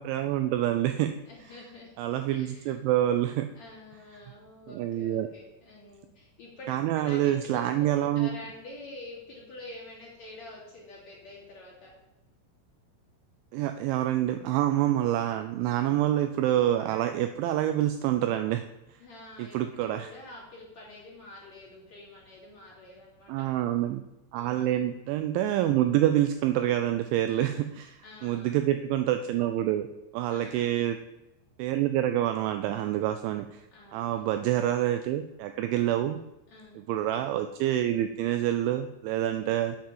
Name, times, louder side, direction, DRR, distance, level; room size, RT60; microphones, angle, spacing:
voice 1, 0.0-1.2 2.0-3.5 4.7-5.3 6.7-8.3 13.5-18.7 19.4-20.1 23.3-24.0 24.3-29.9 30.1-31.0 31.6-33.7 33.9-36.2 36.8-39.8, right 12 dB, 85° right, 8 dB, 2.7 m, -27 dB
voice 2, 1.3-1.9 2.3-2.8 3.5-7.6 7.9-11.9 15.8-16.1 19.0-23.3 24.3-24.8 27.3-27.7 28.0-28.6 30.3-30.8 33.7-34.3 36.5-36.8, left 1 dB, 40° left, -5 dB, 3.1 m, -47 dB
8.6 x 5.8 x 7.4 m, 0.95 s
omnidirectional pair, 5.8 m